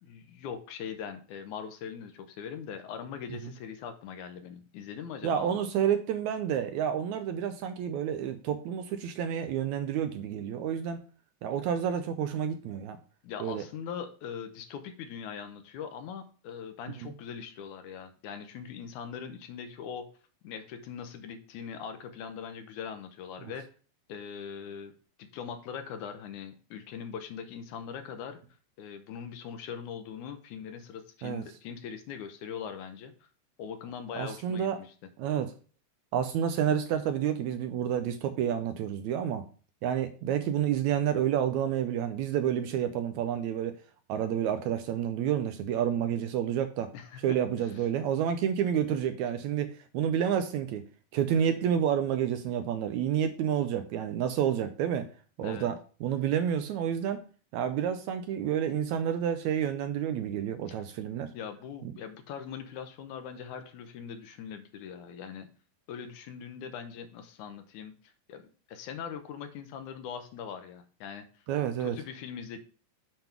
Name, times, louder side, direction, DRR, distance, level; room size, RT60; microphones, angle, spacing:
voice 1, 0.0-5.6 13.2-20.1 20.4-23.7 24.1-24.9 25.2-28.4 28.8-33.3 33.6-34.9 46.9-47.4 55.4-55.7 60.7-60.8 61.3-65.5 65.9-68.4 68.7-71.4 71.8-72.6, left 7 dB, 80° left, 8 dB, 2.1 m, -41 dB
voice 2, 5.2-11.0 11.4-13.0 13.4-13.6 17.0-17.1 23.4-23.5 31.2-31.4 34.1-34.8 35.2-35.5 36.1-39.4 39.8-43.8 44.1-46.9 47.2-50.8 51.1-55.1 55.4-55.8 56.0-57.2 57.5-61.3 71.5-72.0, right 9 dB, 80° right, 8 dB, 1.8 m, -29 dB
7.8 x 3.5 x 5.9 m, 0.38 s
omnidirectional pair, 3.7 m